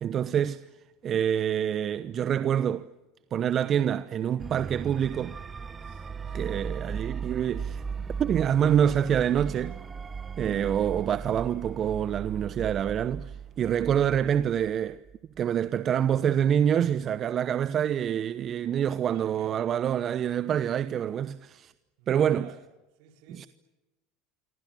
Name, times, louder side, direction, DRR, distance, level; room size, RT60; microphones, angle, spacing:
voice 1, 0.0-0.6 1.0-2.8 3.3-5.4 6.3-7.8 8.2-9.8 10.4-15.0 15.4-21.7 22.1-22.5 23.3-23.5, right 9 dB, 45° right, 0.9 m, -26 dB
sound 1, 4.4-15.4, right 6 dB, 25° right, 1.3 m, -37 dB
voice 2, 5.8-6.8 18.9-19.6 22.0-22.6 23.0-23.5, right 7 dB, 70° right, 5.0 m, -52 dB
27.0 x 25.0 x 7.7 m
hypercardioid pair, 80°, 0 cm